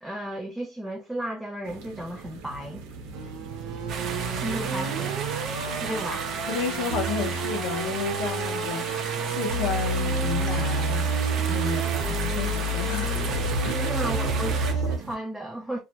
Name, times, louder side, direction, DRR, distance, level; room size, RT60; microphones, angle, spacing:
voice 1, 0.0-2.8 4.4-5.2 5.8-6.3 13.8-15.8, right 1 dB, ahead, 0.4 m, -34 dB
sound 1, 1.6-15.1, right 5 dB, 85° right, 0.8 m, -43 dB
sound 2, 3.1-15.0, right 2 dB, 65° right, 0.9 m, -29 dB
sound 3, 3.9-14.7, right 6 dB, 40° right, 0.6 m, -34 dB
voice 2, 6.5-13.2 13.6-13.8, left 6 dB, 75° left, 0.7 m, -32 dB
2.4 x 2.1 x 2.9 m
cardioid pair, 150°, 0 cm